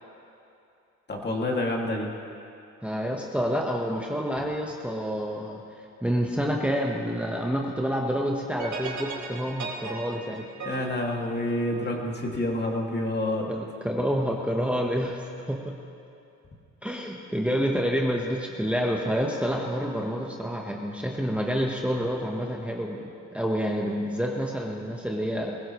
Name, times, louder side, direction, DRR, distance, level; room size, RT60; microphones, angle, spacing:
voice 1, 1.1-2.1 10.6-13.5, left 1 dB, 35° left, -1 dB, 2.5 m, -28 dB
voice 2, 2.8-10.4 13.5-15.8 16.8-25.6, equal, 5° right, -1 dB, 1.2 m, -28 dB
sound 1, 8.6-12.0, right 4 dB, 75° right, 4.1 m, -37 dB
22.5 x 15.5 x 3.2 m, 2.6 s
cardioid pair, 90°, 30 cm